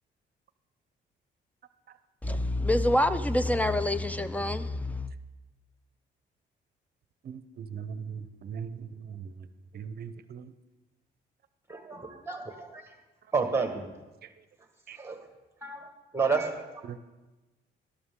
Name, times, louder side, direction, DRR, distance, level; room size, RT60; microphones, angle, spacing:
voice 1, 2.2-5.1, left 1 dB, 5° left, 0.5 m, -26 dB
voice 2, 7.2-9.3 9.7-10.5 14.9-15.0 16.8-17.0, right 7 dB, 50° right, 0.7 m, -40 dB
voice 3, 11.7-12.8 13.3-13.8 15.0-15.2 15.6-16.7, right 4 dB, 10° right, 1.7 m, -30 dB
12.5 x 11.5 x 3.7 m
cardioid pair, 90°, 20 cm